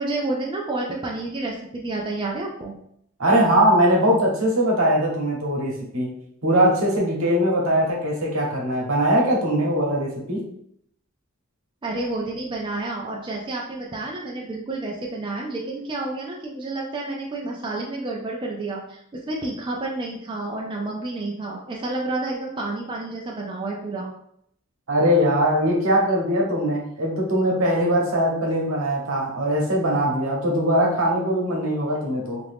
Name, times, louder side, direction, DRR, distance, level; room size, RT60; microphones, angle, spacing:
voice 1, 0.0-2.8 11.8-24.1, right 2 dB, 25° right, -2 dB, 0.4 m, -30 dB
voice 2, 3.2-6.1 6.4-10.4 24.9-32.4, equal, 75° right, -2 dB, 1.0 m, -21 dB
2.8 x 2.5 x 3.4 m, 0.70 s
head